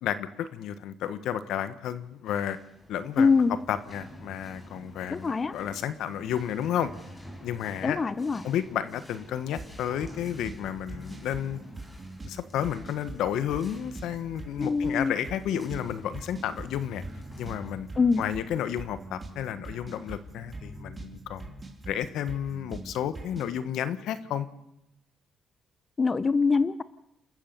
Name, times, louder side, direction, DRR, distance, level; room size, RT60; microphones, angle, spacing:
voice 1, 0.0-2.6 2.9-3.3 3.7-6.9 7.4-8.0 8.4-11.6 12.2-17.0 17.4-17.9 18.2-21.5 21.9-24.5, left 10 dB, 85° left, 13 dB, 1.4 m, -32 dB
sound 1, 2.1-19.5, equal, 15° left, 5.6 m, -49 dB
voice 2, 3.2-3.5 5.1-5.5 7.8-8.4 14.6-15.1 18.0-18.2 26.0-26.8, left 4 dB, 35° left, 16 dB, 0.8 m, -23 dB
sound 2, 9.6-23.6, right 2 dB, 30° right, 3.4 m, -43 dB
29.0 x 14.0 x 6.9 m, 0.84 s
cardioid pair, 90°, 0 cm